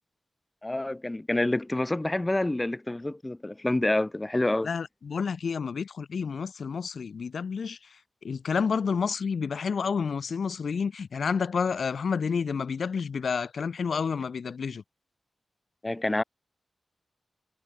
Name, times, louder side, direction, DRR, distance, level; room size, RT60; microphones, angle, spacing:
voice 1, 0.6-4.7 15.8-16.2, left 1 dB, 20° left, 3.0 m, -27 dB
voice 2, 4.6-7.8 8.2-14.8, left 6 dB, 75° left, 3.0 m, -29 dB
cardioid pair, 70°, 0 cm